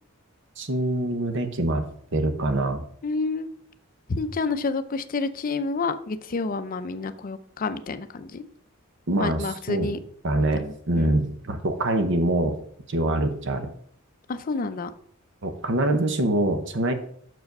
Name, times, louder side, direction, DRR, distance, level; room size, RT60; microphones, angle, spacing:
voice 1, 0.6-1.8 2.1-2.8 9.1-9.9 10.2-12.5 12.9-13.7 15.4-16.9, right 1 dB, 60° right, 8 dB, 0.9 m, -24 dB
voice 2, 3.0-3.5 4.1-8.4 9.2-10.0 10.6-11.2 14.3-14.9, left 3 dB, 40° left, 11 dB, 0.5 m, -29 dB
6.3 x 4.8 x 5.2 m, 0.63 s
head